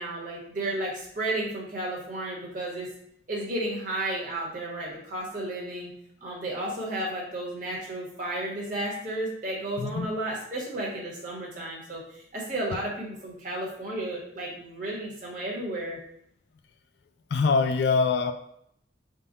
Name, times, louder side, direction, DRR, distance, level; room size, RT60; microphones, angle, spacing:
voice 1, 0.0-2.9 3.3-5.9 6.2-16.0, right 1 dB, 45° right, -4 dB, 1.1 m, -33 dB
voice 2, 17.3-18.3, left 4 dB, 60° left, 8 dB, 0.3 m, -23 dB
3.8 x 2.2 x 3.9 m, 0.71 s
head